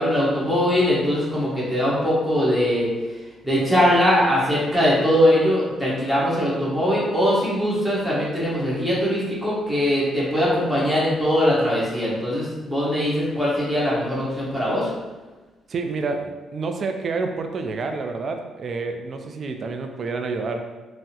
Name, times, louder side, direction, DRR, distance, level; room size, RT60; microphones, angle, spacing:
voice 1, 0.0-2.9 3.4-14.9, equal, ahead, -8 dB, 1.2 m, -21 dB
voice 2, 15.7-20.7, right 4 dB, 50° right, 5 dB, 0.3 m, -28 dB
3.4 x 2.0 x 2.8 m, 1.2 s
cardioid pair, 90°, 0 cm